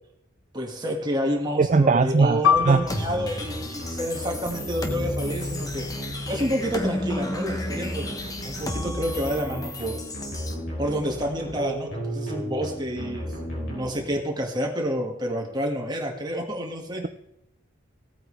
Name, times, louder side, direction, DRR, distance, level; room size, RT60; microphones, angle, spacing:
voice 1, 0.5-5.8 6.3-8.0 8.4-10.0 10.8-17.0, equal, 20° right, 1 dB, 1.9 m, -29 dB
voice 2, 1.6-2.8, right 4 dB, 35° right, 11 dB, 0.4 m, -20 dB
Piano, 2.4-7.5 7.8-8.0 8.8-9.1, left 8 dB, 80° left, 0.4 m, -29 dB
sound 1, 2.5-14.4, equal, 60° left, 4.4 m, -35 dB
sound 2, 2.9-10.5, left 1 dB, 15° left, 1.1 m, -33 dB
17.0 x 8.8 x 3.3 m, 0.82 s
head